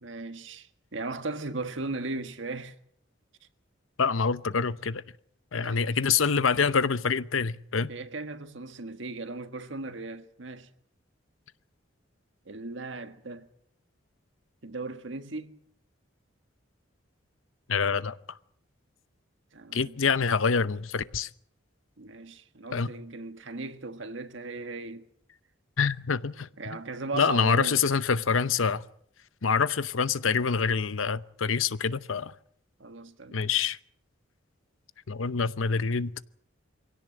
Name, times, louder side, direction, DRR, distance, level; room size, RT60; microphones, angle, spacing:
voice 1, 0.0-2.7 5.5-5.8 7.9-10.7 12.4-13.5 14.6-15.6 19.5-20.0 22.0-25.1 26.6-27.8 32.8-33.5, right 3 dB, 70° right, 1.5 m, -37 dB
voice 2, 4.0-5.0 5.5-7.9 17.7-18.2 19.7-21.3 22.7-22.9 25.8-26.5 27.1-28.8 29.4-32.3 33.3-33.8 35.1-36.2, left 5 dB, 85° left, 0.8 m, -26 dB
23.5 x 17.0 x 7.8 m
head